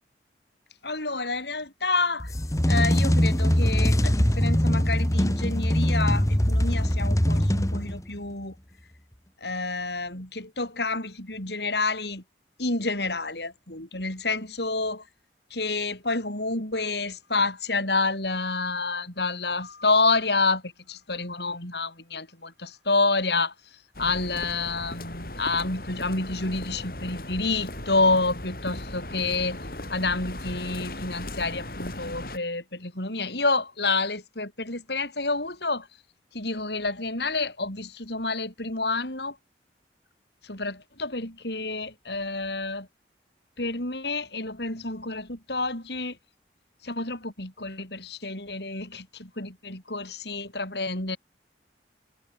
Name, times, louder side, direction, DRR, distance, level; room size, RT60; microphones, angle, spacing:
voice 1, 0.8-2.3 2.7-8.5 9.4-12.2 12.6-15.0 15.5-23.5 24.0-29.6 29.9-35.9 36.3-39.4 40.4-42.9 43.6-46.2 46.8-51.2, left 3 dB, 70° left, 7.2 m, -28 dB
sound 1, 2.2-8.2, equal, 20° left, 1.5 m, -22 dB
sound 2, 23.9-32.4, left 1 dB, 55° left, 6.2 m, -37 dB
head